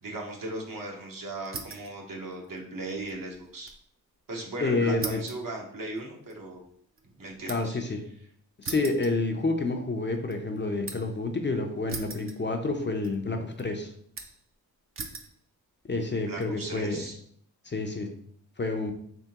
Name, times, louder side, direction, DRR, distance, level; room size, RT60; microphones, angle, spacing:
voice 1, 0.0-3.7 4.3-6.6 7.0-7.8 16.1-17.2, right 2 dB, 60° right, 0 dB, 1.0 m, -37 dB
sound 1, 1.4-2.0 2.3-3.8 4.2-4.3 5.0-7.8 8.6-9.8 10.1-11.2 11.9-12.8 13.0-13.6 14.2-14.5 14.9-15.4 16.0-16.5, right 4 dB, 35° right, 0.5 m, -41 dB
voice 2, 4.6-5.2 7.5-8.0 8.6-13.9 15.9-17.0 17.7-18.1 18.6-18.9, left 3 dB, 30° left, 4 dB, 0.5 m, -29 dB
3.6 x 3.5 x 2.8 m, 0.65 s
cardioid pair, 65°, 37 cm